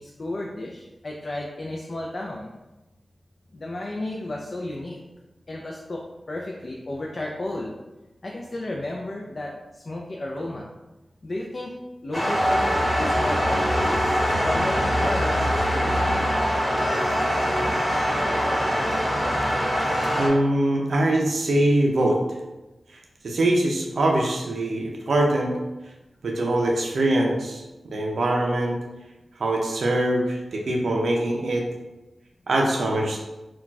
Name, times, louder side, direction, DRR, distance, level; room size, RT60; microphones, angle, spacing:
voice 1, 0.0-2.5 3.5-5.0 5.5-7.7 8.2-10.7 11.2-11.7 12.0-14.2 14.4-16.2, left 1 dB, 55° left, -2 dB, 0.4 m, -33 dB
sound 1, 12.1-20.3, equal, 20° left, 0.9 m, -23 dB
voice 2, 20.2-22.2 23.2-25.5 26.2-28.8 29.4-31.7 32.5-33.2, right 1 dB, 80° right, 0 dB, 0.4 m, -23 dB
2.3 x 2.2 x 3.9 m, 1.0 s
cardioid pair, 50°, 0 cm